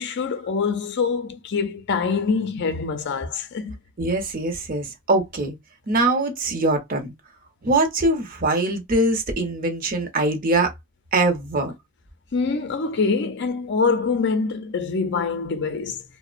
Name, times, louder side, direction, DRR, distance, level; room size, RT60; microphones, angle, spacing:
voice 1, 0.0-3.7 12.3-16.0, left 4 dB, 55° left, 0.5 m, -24 dB
voice 2, 4.0-5.5 5.9-7.1 7.6-10.7 11.1-11.7, right 2 dB, 40° right, 0.8 m, -22 dB
2.8 x 2.0 x 2.4 m
head